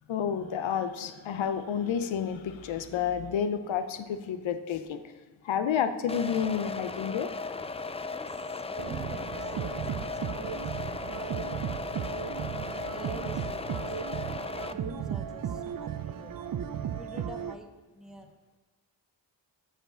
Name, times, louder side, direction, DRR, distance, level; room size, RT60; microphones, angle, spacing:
voice 1, 0.1-5.0 5.4-7.3, left 8 dB, 85° left, 10 dB, 0.7 m, -30 dB
sound 1, 6.1-14.7, left 3 dB, 15° left, 0.3 m, -37 dB
voice 2, 8.1-9.4 9.7-11.5 12.7-16.4 16.9-17.7 17.9-18.3, right 1 dB, ahead, 3 dB, 1.1 m, -47 dB
sound 2, 8.8-17.6, right 9 dB, 50° right, 0.5 m, -35 dB
7.6 x 5.2 x 6.2 m, 1.3 s
cardioid pair, 45°, 45 cm